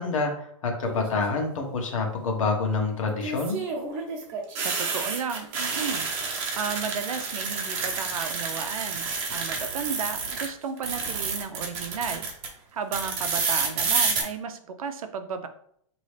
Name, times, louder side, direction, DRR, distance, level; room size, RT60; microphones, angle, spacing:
voice 1, 0.0-3.6, left 4 dB, 70° left, 3 dB, 1.2 m, -27 dB
sound 1, 0.8-1.3 3.2-10.5 10.8-12.5 12.9-14.2, right 4 dB, 30° right, 0.9 m, -29 dB
voice 2, 4.6-6.1 6.6-12.3 12.7-15.5, right 6 dB, 80° right, 8 dB, 0.6 m, -33 dB
4.1 x 3.0 x 3.3 m, 0.67 s
hypercardioid pair, 160°, 18 cm